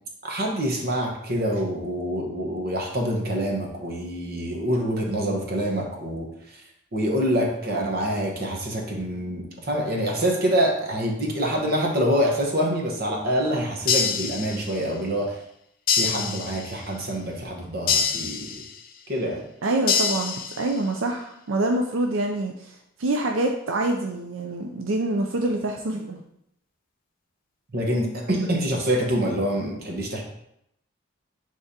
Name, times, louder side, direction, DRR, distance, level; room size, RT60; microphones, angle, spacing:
voice 1, 0.2-6.6 6.9-15.4 15.9-18.6 19.1-19.4 27.7-30.2, equal, 50° right, 0 dB, 1.2 m, -26 dB
sound 1, 13.9-14.9 15.9-16.9 17.9-18.9 19.9-20.9, left 6 dB, 45° left, 0.5 m, -26 dB
voice 2, 19.6-26.2, right 2 dB, 80° right, 3 dB, 0.5 m, -26 dB
10.0 x 3.5 x 2.8 m, 0.77 s
head